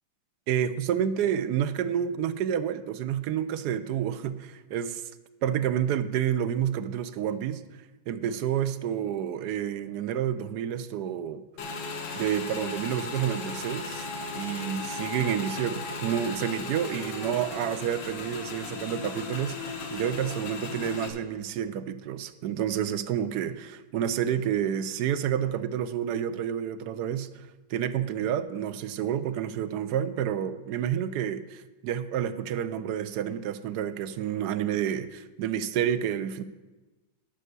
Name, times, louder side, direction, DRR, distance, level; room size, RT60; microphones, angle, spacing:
voice 1, 0.5-5.0 5.4-7.6 8.1-11.4 12.1-14.1 14.3-27.3 27.7-36.4, right 9 dB, 70° right, 12 dB, 1.0 m, -29 dB
Motorcycle / Engine, 11.6-21.1, left 4 dB, 70° left, 1.7 m, -36 dB
12.0 x 5.4 x 6.8 m, 1.2 s
omnidirectional pair, 2.0 m